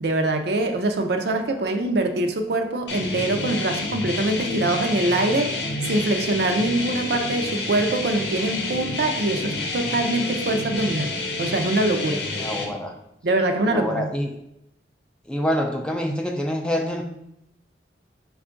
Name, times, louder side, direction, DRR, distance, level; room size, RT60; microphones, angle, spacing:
voice 1, 0.0-5.5 5.8-11.1 11.4-12.2 13.2-14.1, right 2 dB, 65° right, 5 dB, 0.5 m, -23 dB
sound 1, 2.9-12.7, left 3 dB, 70° left, 0.7 m, -29 dB
voice 2, 12.4-12.9 13.7-14.3 15.3-17.0, equal, 5° left, 3 dB, 0.3 m, -26 dB
5.3 x 2.3 x 3.7 m, 0.82 s
head